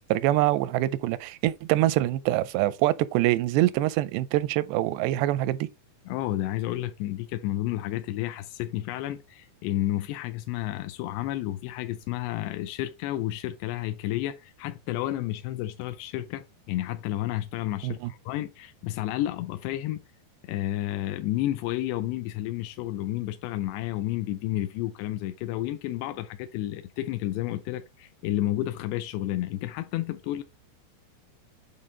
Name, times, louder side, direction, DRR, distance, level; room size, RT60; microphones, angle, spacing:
voice 1, 0.1-5.7 17.8-18.1, right 15 dB, 85° right, 2.7 m, -24 dB
voice 2, 6.1-20.0 20.4-30.4, left 14 dB, 90° left, 2.7 m, -31 dB
8.6 x 3.6 x 3.8 m
omnidirectional pair, 4.8 m